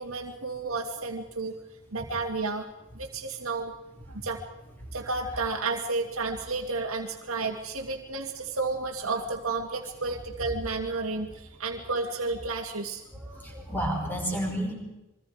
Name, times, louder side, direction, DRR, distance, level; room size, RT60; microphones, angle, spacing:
voice 1, 0.0-1.6 1.9-2.6 2.9-3.7 4.1-4.4 4.9-13.0 13.4-13.5, right 3 dB, 90° right, 2 dB, 2.3 m, -32 dB
voice 2, 13.1-14.7, equal, 10° left, -1 dB, 5.6 m, -31 dB
26.0 x 23.0 x 5.1 m, 0.99 s
head